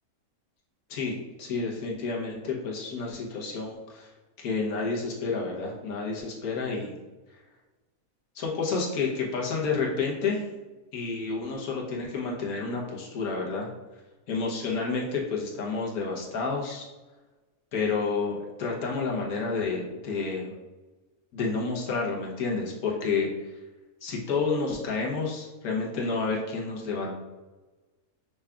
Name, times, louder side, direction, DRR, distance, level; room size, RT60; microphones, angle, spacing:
voice 1, 0.9-4.1 4.4-6.9 8.3-10.4 10.9-13.7 14.3-16.9 17.7-20.6 21.3-23.3 24.0-27.1, left 4 dB, 75° left, -2 dB, 1.4 m, -30 dB
5.6 x 3.6 x 2.3 m, 1.2 s
omnidirectional pair, 1.6 m